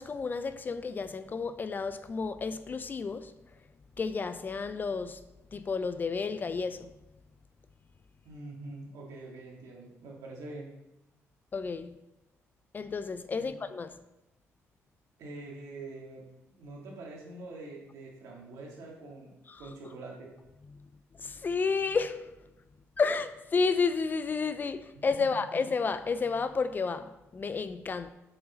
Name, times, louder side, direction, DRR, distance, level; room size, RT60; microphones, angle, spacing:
voice 1, 0.0-3.3 4.0-5.2 5.5-6.9 11.5-11.9 12.7-14.0 19.5-19.6 20.7-20.9 21.1-22.3 23.0-28.1, left 4 dB, 35° left, 0.4 m, -31 dB
voice 2, 8.2-10.7 13.4-13.6 15.2-19.3 19.6-20.3 25.2-25.6, right 2 dB, 80° right, 1.8 m, -45 dB
6.3 x 4.7 x 3.9 m
cardioid pair, 85°, 6 cm